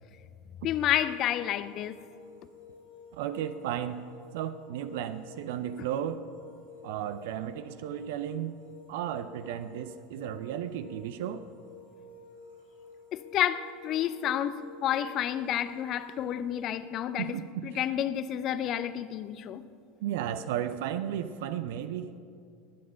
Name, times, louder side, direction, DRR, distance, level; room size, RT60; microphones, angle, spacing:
voice 1, 0.6-2.0 13.1-17.3 17.6-19.6, left 11 dB, 40° left, 0.6 m, -30 dB
sound 1, 0.7-16.7, left 4 dB, 85° right, 3.1 m, -52 dB
voice 2, 3.1-4.0 4.3-6.2 6.8-8.5 8.9-11.4 17.2-17.9 20.0-22.1, right 10 dB, 60° right, 0.5 m, -34 dB
20.0 x 9.4 x 5.7 m
figure-of-eight pair, 75°, 0 cm